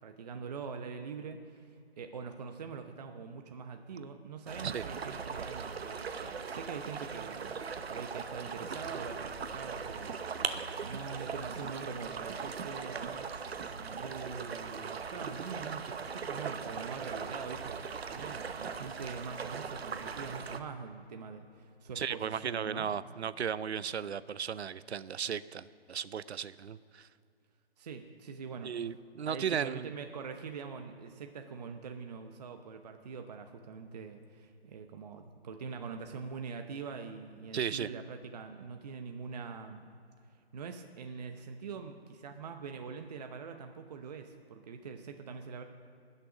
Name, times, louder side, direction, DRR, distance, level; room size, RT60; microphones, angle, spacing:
voice 1, 0.0-7.5 7.9-13.2 13.7-17.8 18.1-22.9 27.8-28.7 29.3-39.9 40.3-45.6, right 5 dB, 40° right, 5 dB, 0.8 m, -44 dB
sound 1, 4.5-20.6, right 5 dB, 70° right, 1.1 m, -39 dB
voice 2, 22.0-27.1 28.6-29.9 37.5-37.9, right 7 dB, 90° right, 17 dB, 0.6 m, -35 dB
20.0 x 6.8 x 6.0 m, 2.4 s
hypercardioid pair, 160°, 32 cm